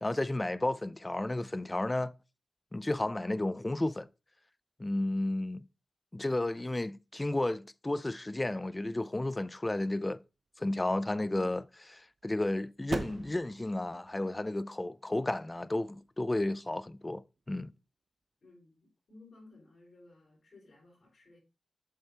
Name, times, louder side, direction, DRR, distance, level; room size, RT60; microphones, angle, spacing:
voice 1, 0.0-2.1 2.7-4.1 4.8-5.6 6.1-10.2 10.6-17.2 17.5-17.7, left 1 dB, 20° left, 0.4 m, -32 dB
sound 1, 10.3-17.6, right 4 dB, 60° right, 0.7 m, -46 dB
voice 2, 18.4-21.4, left 2 dB, 65° left, 5.1 m, -57 dB
8.1 x 7.8 x 2.8 m
wide cardioid pair, 115°, 0 cm